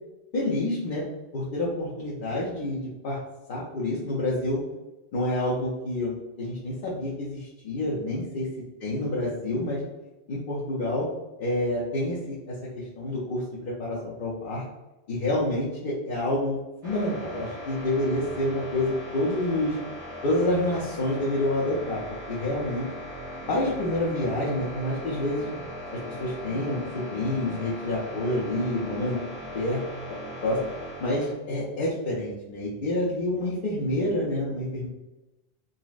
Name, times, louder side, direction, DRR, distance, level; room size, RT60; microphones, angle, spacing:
voice 1, 0.3-1.0 1.3-3.2 3.5-4.6 5.1-8.5 8.8-9.8 10.3-11.0 11.4-14.6 15.1-19.8 20.2-22.0 22.3-22.9 23.5-25.5 26.2-29.2 29.5-29.8 30.4-30.6 31.0-34.9, left 1 dB, 55° left, -7 dB, 0.8 m, -28 dB
sound 1, 16.8-31.3, equal, 80° right, 1.5 m, -39 dB
3.9 x 2.0 x 2.4 m, 1.0 s
omnidirectional pair, 1.1 m